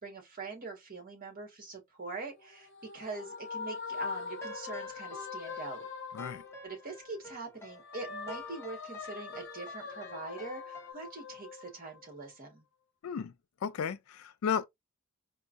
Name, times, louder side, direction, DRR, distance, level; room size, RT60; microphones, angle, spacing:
voice 1, 0.0-5.9 6.6-12.6, right 3 dB, 45° right, 1.4 m, -43 dB
sound 1, 2.2-7.2 7.6-12.3, left 5 dB, 60° left, 0.8 m, -43 dB
sound 2, 3.9-10.9, left 1 dB, 15° left, 0.7 m, -50 dB
voice 2, 13.6-14.7, left 7 dB, 80° left, 0.4 m, -33 dB
4.5 x 2.1 x 2.5 m
head